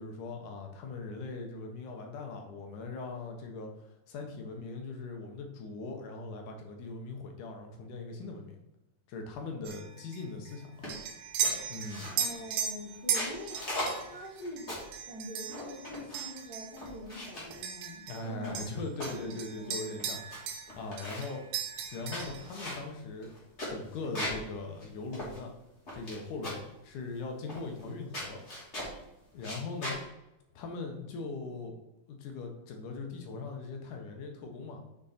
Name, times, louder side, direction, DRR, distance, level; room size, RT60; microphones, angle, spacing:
voice 1, 0.0-8.6 9.1-10.9 11.7-12.1 18.1-20.2 20.7-21.4 21.9-23.3 23.7-25.5 25.9-28.4 29.3-30.0 30.6-31.8 32.1-34.8, left 3 dB, 70° left, 3 dB, 2.5 m, -40 dB
sound 1, 9.7-18.3 18.6-20.7 21.0-22.5, right 7 dB, 90° right, 2.8 m, -37 dB
sound 2, 10.8-11.1 11.4-12.4 12.9-15.0 15.5-16.4 16.8-17.6 18.2-19.2 19.7-19.8 20.0-20.4 20.7-21.4 21.9-24.5 24.8-24.9 25.1-26.2 26.4-26.7 27.5-27.9 28.1-29.0 29.4-30.0, left 1 dB, 20° left, 2.6 m, -39 dB
voice 2, 12.1-13.6 14.0-14.7 15.1-18.7 19.1-20.1, left 1 dB, 40° left, -7 dB, 1.4 m, -44 dB
6.5 x 6.1 x 4.2 m, 0.92 s
omnidirectional pair, 4.0 m